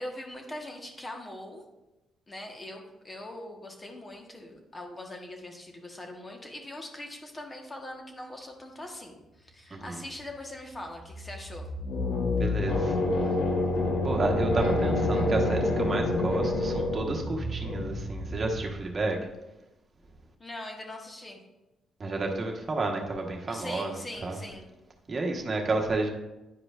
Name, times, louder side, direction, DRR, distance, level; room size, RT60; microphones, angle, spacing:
voice 1, 0.0-1.6 2.3-11.7 20.4-21.4 23.5-24.7, left 1 dB, 25° left, 2 dB, 1.3 m, -42 dB
sound 1, 11.1-19.0, left 2 dB, 75° left, 1.3 m, -28 dB
voice 2, 12.4-12.9 14.0-19.2 22.0-24.0 24.2-24.4 25.1-26.1, right 3 dB, 35° right, 1 dB, 1.3 m, -31 dB
10.0 x 4.9 x 2.5 m, 0.99 s
cardioid pair, 90°, 0 cm